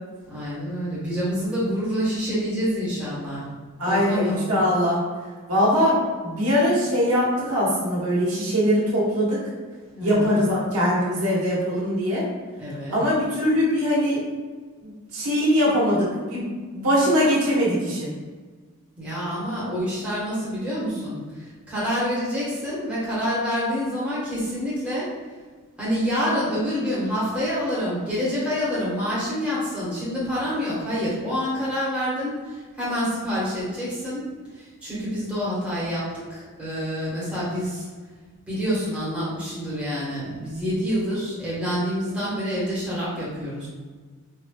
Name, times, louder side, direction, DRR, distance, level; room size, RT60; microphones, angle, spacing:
voice 1, 0.3-3.4 3.8-4.4 9.9-10.4 12.6-13.0 19.0-25.1 25.8-34.2 34.5-37.9 38.5-43.7, equal, 5° right, -10 dB, 1.2 m, -27 dB
voice 2, 3.8-5.0 5.5-9.4 10.0-12.2 12.9-14.2 14.8-16.4 16.7-18.1, equal, 85° right, -7 dB, 1.4 m, -22 dB
4.5 x 2.8 x 2.3 m, 1.5 s
head